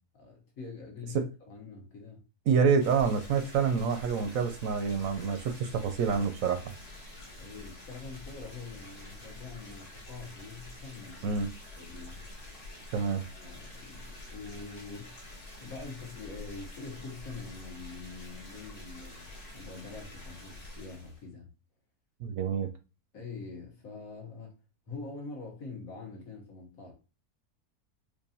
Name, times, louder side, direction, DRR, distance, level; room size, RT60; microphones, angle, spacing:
voice 1, 0.0-2.2 7.4-11.4 11.8-12.2 13.3-15.2 15.6-21.5 23.1-24.6 24.9-26.9, left 4 dB, 65° left, 1.6 m, -44 dB
voice 2, 2.5-6.6 11.2-11.5 12.9-13.2 22.2-22.7, right 6 dB, 70° right, 0.9 m, -27 dB
sound 1, 2.8-21.2, left 2 dB, 30° left, 1.1 m, -47 dB
4.6 x 2.5 x 2.7 m
omnidirectional pair, 1.6 m